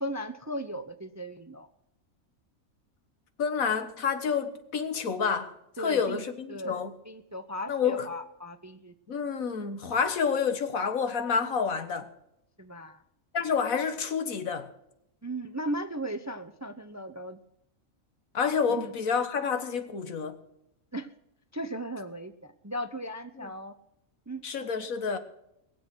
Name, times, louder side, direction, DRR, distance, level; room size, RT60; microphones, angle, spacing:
voice 1, 0.0-1.7 5.8-6.2 6.5-9.2 12.6-13.0 15.2-17.4 18.7-18.9 20.9-21.1 21.5-23.7 24.3-24.4, right 1 dB, 20° right, 0.4 m, -37 dB
voice 2, 3.4-5.5 5.8-7.0 7.7-8.1 9.1-12.1 13.3-14.7 18.3-20.4 23.4-23.5 24.4-25.2, left 6 dB, 85° left, 1.7 m, -29 dB
21.0 x 7.7 x 6.2 m
omnidirectional pair, 1.4 m